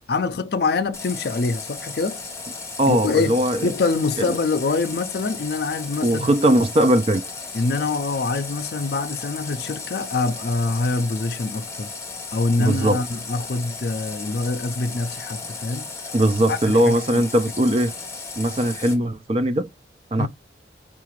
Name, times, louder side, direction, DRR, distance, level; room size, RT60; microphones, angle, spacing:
voice 1, 0.1-2.2 2.9-6.3 7.5-11.9 12.3-15.9 16.2-17.2 17.7-17.8 20.2-20.3, left 3 dB, 55° left, 0.4 m, -25 dB
Water tap faucet, 0.9-18.9, left 4 dB, 15° left, 1.0 m, -35 dB
voice 2, 2.8-3.6 6.0-7.2 12.6-13.0 16.1-17.9 18.4-19.7 20.1-20.3, right 1 dB, 30° right, 0.4 m, -19 dB
4.8 x 2.4 x 3.0 m
head